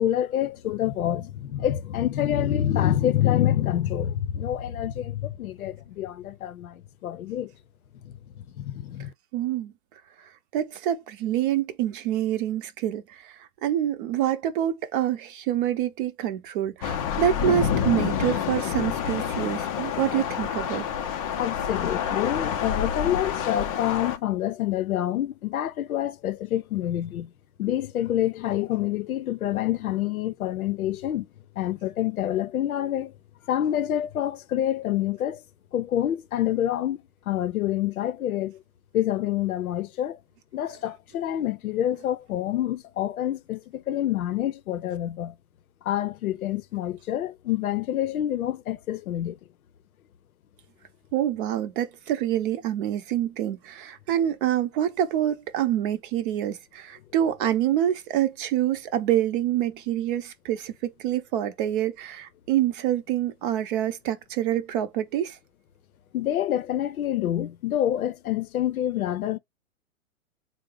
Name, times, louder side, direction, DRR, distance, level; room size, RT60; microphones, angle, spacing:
voice 1, 0.0-7.5 8.0-9.1 21.4-27.3 27.6-31.3 31.6-33.1 33.5-35.4 35.7-38.6 38.9-40.2 40.5-45.3 45.8-49.4 66.1-69.4, left 12 dB, 85° left, 0.7 m, -27 dB
voice 2, 9.3-9.7 10.5-20.9 51.1-65.4, right 11 dB, 40° right, 0.6 m, -26 dB
Thunder / Rain, 16.8-24.2, left 8 dB, 25° left, 0.4 m, -28 dB
3.7 x 2.1 x 3.7 m
hypercardioid pair, 135°, 42 cm